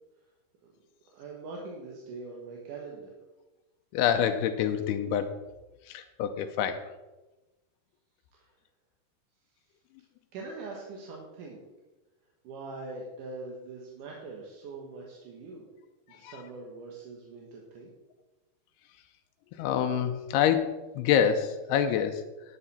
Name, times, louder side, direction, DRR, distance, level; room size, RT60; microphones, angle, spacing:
voice 1, 1.0-3.1 8.3-8.5 10.3-11.6 12.4-15.6 16.1-17.9, right 3 dB, 65° right, -2 dB, 2.5 m, -42 dB
voice 2, 3.9-5.3 5.9-6.8 16.2-16.3 19.6-22.2, left 9 dB, 90° left, 7 dB, 2.7 m, -26 dB
11.5 x 9.2 x 4.2 m, 1.1 s
omnidirectional pair, 4.7 m